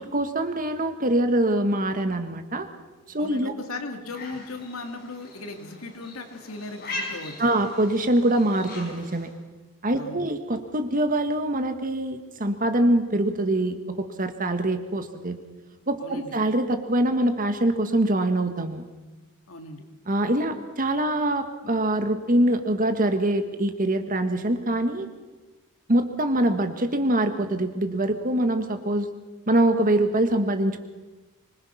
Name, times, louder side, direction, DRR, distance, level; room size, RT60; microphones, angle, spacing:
voice 1, 0.0-2.7 3.1-3.5 7.4-9.3 9.8-15.4 15.9-18.8 20.1-25.1 25.9-29.1 29.5-30.8, right 1 dB, 40° right, 8 dB, 1.7 m, -24 dB
voice 2, 3.2-7.6 9.9-10.3 16.0-16.3 19.5-19.8, left 2 dB, 70° left, 5 dB, 2.5 m, -37 dB
sound 1, 4.0-9.3, left 2 dB, 45° left, 6.3 m, -40 dB
25.5 x 20.0 x 5.8 m, 1.2 s
head